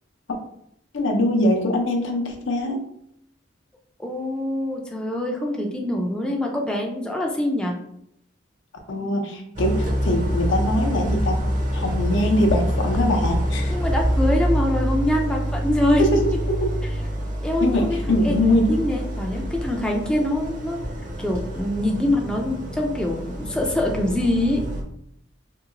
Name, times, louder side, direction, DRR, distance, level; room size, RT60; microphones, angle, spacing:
voice 1, 0.9-2.8 8.9-13.7 16.0-16.2 16.5-16.7 17.6-18.7, left 1 dB, 80° left, 3 dB, 0.6 m, -22 dB
voice 2, 4.0-7.7 13.7-16.0 17.4-18.4 18.7-20.8 21.2-24.6, left 1 dB, 5° left, -1 dB, 0.3 m, -24 dB
Idling, 9.6-24.8, equal, 45° right, 0.6 m, -26 dB
2.9 x 2.7 x 2.5 m, 0.74 s
head